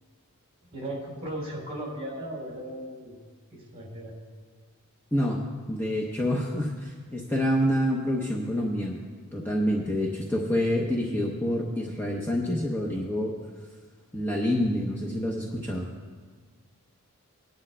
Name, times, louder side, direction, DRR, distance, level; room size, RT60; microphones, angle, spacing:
voice 1, 0.7-3.2 3.5-4.1, right 1 dB, 30° right, -4 dB, 3.8 m, -36 dB
voice 2, 5.1-5.4 5.7-9.0 9.3-13.4 14.1-15.9, equal, 10° left, -2 dB, 0.8 m, -27 dB
22.0 x 9.8 x 2.2 m, 1.5 s
head